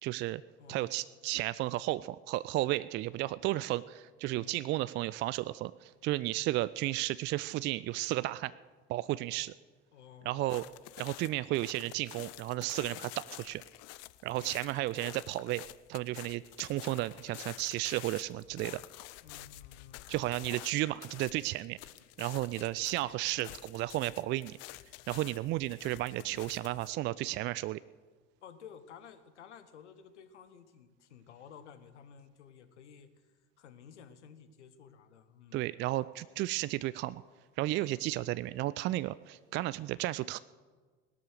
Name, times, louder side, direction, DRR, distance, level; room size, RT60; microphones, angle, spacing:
voice 1, 0.0-0.4 0.7-8.5 8.9-9.5 10.3-10.6 11.0-13.6 14.2-15.6 15.9-18.8 20.1-21.8 22.2-24.6 25.1-27.8 35.5-37.2 37.6-40.4, right 17 dB, 30° right, 17 dB, 0.4 m, -33 dB
voice 2, 0.6-1.1 4.3-4.6 9.9-10.8 19.2-20.1 28.4-35.7, left 7 dB, 70° left, 11 dB, 1.3 m, -54 dB
sound 1, 10.5-26.9, left 19 dB, 45° left, 0.5 m, -49 dB
18.0 x 12.0 x 6.6 m, 1.4 s
figure-of-eight pair, 65°, 36 cm